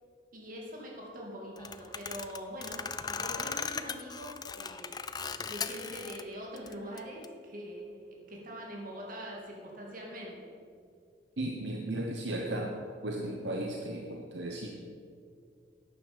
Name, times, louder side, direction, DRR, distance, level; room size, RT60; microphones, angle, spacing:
voice 1, 0.3-10.5, equal, 50° right, -2 dB, 2.4 m, -43 dB
sound 1, 1.6-6.2 6.5-7.3, left 6 dB, 20° left, 0.4 m, -38 dB
voice 2, 11.4-12.8 13.0-14.7, right 1 dB, 70° right, 1 dB, 1.0 m, -35 dB
11.5 x 9.4 x 5.2 m, 2.2 s
head